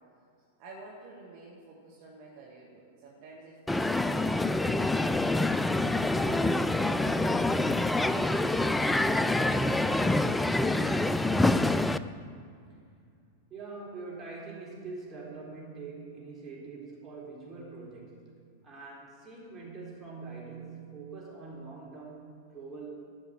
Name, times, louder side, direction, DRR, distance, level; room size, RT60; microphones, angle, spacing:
voice 1, 0.6-6.5, right 3 dB, 45° right, -3 dB, 2.0 m, -50 dB
Crowd, 3.7-12.0, left 2 dB, 5° left, 0.4 m, -26 dB
voice 2, 13.5-18.3 18.6-23.0, right 4 dB, 20° right, -3 dB, 3.8 m, -44 dB
13.0 x 6.4 x 7.6 m, 2.3 s
figure-of-eight pair, 95°, 0 cm